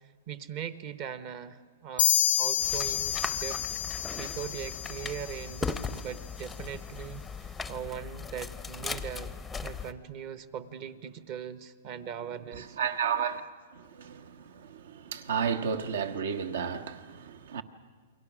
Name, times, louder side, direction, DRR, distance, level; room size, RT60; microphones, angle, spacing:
voice 1, 0.3-2.1 2.4-3.6 4.2-9.3 9.6-12.8, right 8 dB, 35° right, 0.9 m, -40 dB
sound 1, 2.0-5.6, left 10 dB, 80° left, 0.6 m, -29 dB
sound 2, 2.6-9.9, left 4 dB, 5° left, 0.6 m, -38 dB
voice 2, 12.5-13.5 13.7-17.6, right 7 dB, 75° right, 1.4 m, -32 dB
28.5 x 23.0 x 6.2 m
hypercardioid pair, 160°, 0 cm